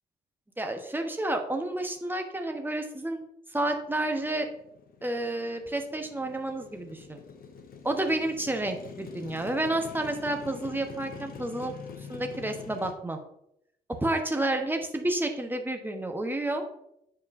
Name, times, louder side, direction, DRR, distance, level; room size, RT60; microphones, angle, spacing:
voice 1, 0.6-3.2 3.5-4.5 5.0-7.2 7.8-11.7 12.1-13.2 14.0-16.6, right 1 dB, 10° right, 4 dB, 1.0 m, -30 dB
Motorcycle, 3.6-12.9, left 6 dB, 45° left, 0.8 m, -45 dB
9.5 x 4.3 x 2.6 m, 0.78 s
figure-of-eight pair, 45°, 21 cm